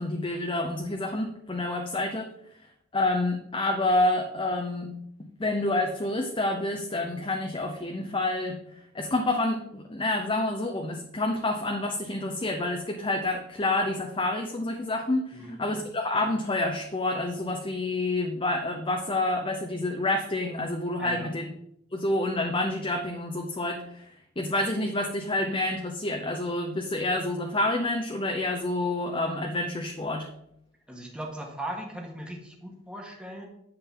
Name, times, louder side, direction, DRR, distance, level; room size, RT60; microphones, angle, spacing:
voice 1, 0.0-2.3 2.9-4.9 5.4-8.6 8.9-21.5 21.9-30.3, left 2 dB, 25° left, 2 dB, 0.8 m, -28 dB
voice 2, 15.3-15.7 21.0-21.3 30.9-33.5, right 1 dB, 5° right, 0 dB, 1.6 m, -38 dB
10.0 x 7.6 x 3.8 m, 0.76 s
head